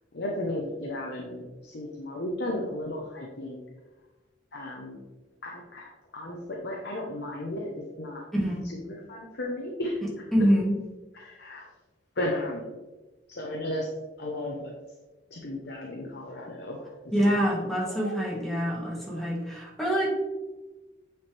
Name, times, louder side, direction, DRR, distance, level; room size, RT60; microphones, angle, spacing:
voice 1, 0.1-3.6 4.5-5.0 5.4-8.2 8.6-10.0 11.1-11.6 12.2-12.7 13.3-13.9 14.2-14.7 15.3-16.9 17.2-17.3 17.6-18.1, left 1 dB, 65° left, -1 dB, 1.0 m, -34 dB
voice 2, 8.3-8.6 10.3-10.8 17.1-20.1, equal, ahead, -4 dB, 2.0 m, -25 dB
9.2 x 4.5 x 3.4 m, 1.1 s
head